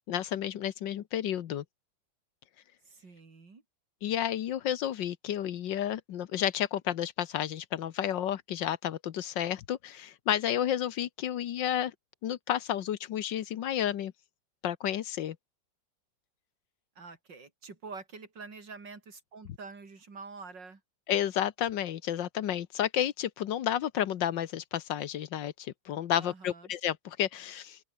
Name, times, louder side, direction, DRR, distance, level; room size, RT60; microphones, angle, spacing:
voice 1, 0.1-1.6 4.0-11.9 12.2-14.1 14.6-15.4 21.1-27.8, left 10 dB, 75° left, 1.6 m, -31 dB
voice 2, 2.9-3.6 17.0-20.8 26.2-26.7, right 4 dB, 70° right, 4.4 m, -46 dB
open air
omnidirectional pair, 2.0 m